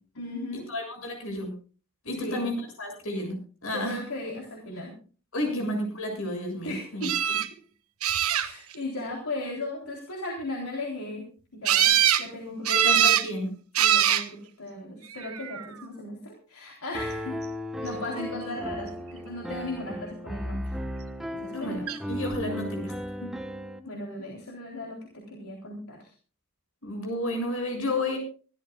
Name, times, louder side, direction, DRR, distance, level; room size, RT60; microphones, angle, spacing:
voice 1, 0.1-0.7 2.1-2.5 3.7-4.9 5.5-5.7 6.6-7.4 8.3-11.3 11.5-13.2 13.8-17.4 17.8-20.7 21.3-21.9 23.8-26.1, left 2 dB, 90° left, 0 dB, 3.7 m, -37 dB
voice 2, 0.7-1.5 2.1-4.0 5.3-7.1 12.7-13.5 21.5-22.9 23.2-23.3 26.8-28.2, left 1 dB, 70° left, 3 dB, 7.1 m, -31 dB
sound 1, 7.0-7.5 8.0-8.7 11.6-12.3 12.7-13.3 13.7-14.3 15.2-15.7 21.9-22.0 22.3-22.4, right 10 dB, 85° right, 1.3 m, -22 dB
Piano, 16.9-23.8, equal, ahead, 1.3 m, -35 dB
25.0 x 13.0 x 2.4 m, 0.37 s
head